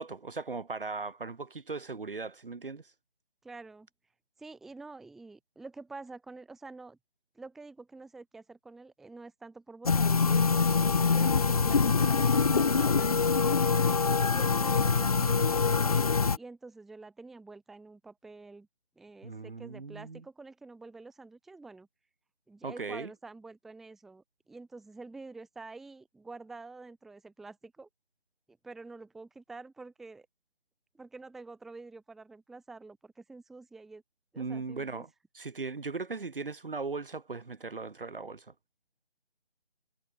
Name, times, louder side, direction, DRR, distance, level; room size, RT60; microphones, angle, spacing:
voice 1, 0.0-2.9 19.2-20.2 22.6-23.1 34.4-35.1 35.3-38.5, right 4 dB, 60° right, 2.5 m, -38 dB
voice 2, 3.4-3.9 4.4-7.0 7.3-10.6 11.1-13.8 14.3-18.7 19.0-21.9 22.5-27.9 28.6-30.3 30.9-34.0 34.3-35.0, right 3 dB, ahead, 1.1 m, -48 dB
sound 1, 9.8-16.4, left 4 dB, 35° left, 0.8 m, -24 dB
figure-of-eight pair, 160°, 31 cm